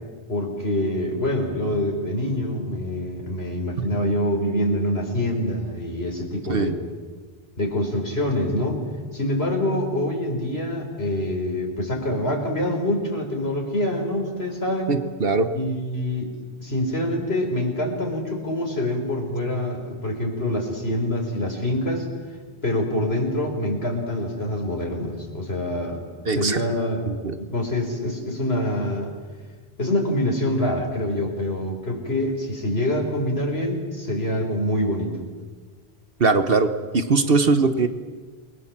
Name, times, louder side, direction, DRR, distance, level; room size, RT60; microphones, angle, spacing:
voice 1, 0.3-6.8 7.6-8.8 9.1-14.9 15.5-16.3 16.6-22.1 22.6-26.0 26.3-27.1 27.4-29.1 29.8-35.2, left 1 dB, 75° left, 2 dB, 4.8 m, -25 dB
voice 2, 14.9-15.5 26.2-26.6 27.1-27.3 36.2-37.9, right 4 dB, 65° right, 9 dB, 1.3 m, -21 dB
29.0 x 22.0 x 7.4 m, 1.5 s
omnidirectional pair, 1.0 m